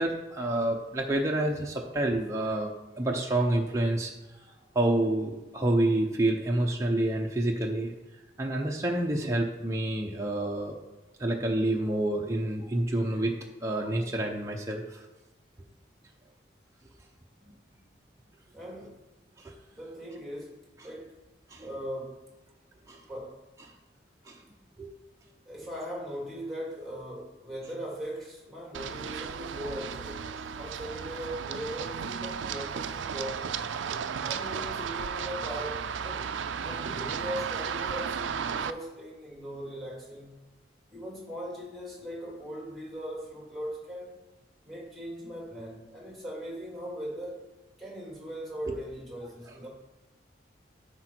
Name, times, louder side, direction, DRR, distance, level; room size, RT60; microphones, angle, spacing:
voice 1, 0.0-2.7 3.0-4.1 4.7-7.9 8.4-10.7 11.2-13.4 13.6-15.0 19.4-19.5 21.5-21.7 22.9-23.0 24.3-24.4 24.8-24.9 48.7-48.8, right 1 dB, 15° right, 0 dB, 0.7 m, -28 dB
voice 2, 18.5-19.1 19.7-21.2 21.6-22.2 23.1-23.4 25.5-30.2 30.6-33.7 34.2-36.3 36.6-40.4 40.9-44.2 44.6-47.5 47.8-49.7, equal, ahead, -3 dB, 2.3 m, -39 dB
Run, 28.7-38.7, right 7 dB, 85° right, 0.4 m, -34 dB
10.0 x 5.2 x 4.5 m, 1.2 s
head